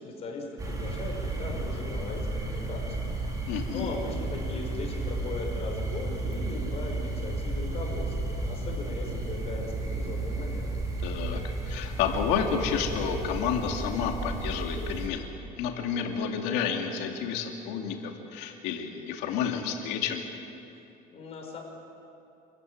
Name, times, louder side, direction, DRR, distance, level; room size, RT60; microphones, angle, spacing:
voice 1, 0.0-10.7 21.1-21.6, left 3 dB, 40° left, 0 dB, 5.6 m, -38 dB
sound 1, 0.6-15.1, right 2 dB, 20° right, 4.1 m, -33 dB
voice 2, 3.5-3.9 11.0-15.3 15.6-20.3, left 7 dB, 85° left, 2 dB, 2.7 m, -30 dB
28.0 x 14.5 x 9.6 m, 2.9 s
cardioid pair, 140°, 17 cm